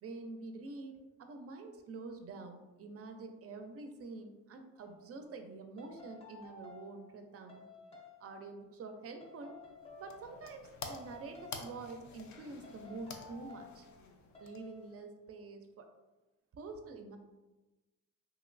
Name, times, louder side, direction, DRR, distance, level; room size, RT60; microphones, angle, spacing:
voice 1, 0.0-7.6 8.2-9.5 10.0-13.9 14.4-15.9 16.5-17.2, right 3 dB, 50° right, 6 dB, 0.5 m, -47 dB
sound 1, 4.8-5.0 5.8-7.0 7.5-8.2 9.2-10.6 10.9-11.8 12.6-13.8 14.3-14.9, left 3 dB, 20° left, 0.6 m, -54 dB
sound 2, 9.6-15.0, left 4 dB, 70° left, 0.5 m, -50 dB
3.0 x 2.8 x 2.4 m, 1.1 s
cardioid pair, 90°, 30 cm